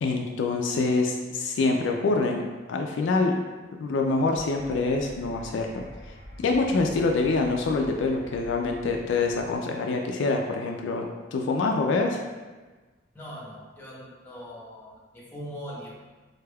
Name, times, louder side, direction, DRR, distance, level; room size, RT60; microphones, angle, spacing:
voice 1, 0.0-2.4 2.7-3.3 3.8-5.8 6.4-12.2, left 3 dB, 70° left, 2 dB, 0.3 m, -25 dB
sound 1, 4.3-9.5, equal, 85° right, 1.3 m, -46 dB
voice 2, 13.1-15.9, equal, 10° left, -6 dB, 0.8 m, -41 dB
4.0 x 3.3 x 2.2 m, 1.3 s
head